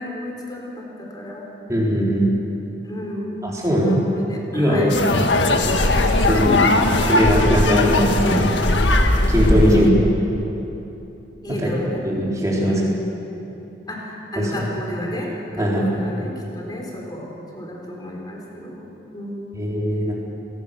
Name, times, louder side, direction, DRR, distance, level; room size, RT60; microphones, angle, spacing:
voice 1, 0.0-1.5 2.8-5.0 6.3-6.8 9.6-9.8 11.4-12.0 12.7-13.2 13.9-19.7, equal, 25° left, -1 dB, 4.1 m, -32 dB
voice 2, 1.7-2.3 3.4-4.0 4.5-4.9 6.3-6.6 7.1-8.5 9.3-9.9 11.6-11.7 12.0-12.8 14.4-14.5 15.6-16.1 19.6-20.1, equal, 20° right, -4 dB, 4.3 m, -19 dB
sound 1, 4.9-9.9, left 2 dB, 90° left, 1.7 m, -18 dB
26.0 x 18.0 x 7.0 m, 2.9 s
head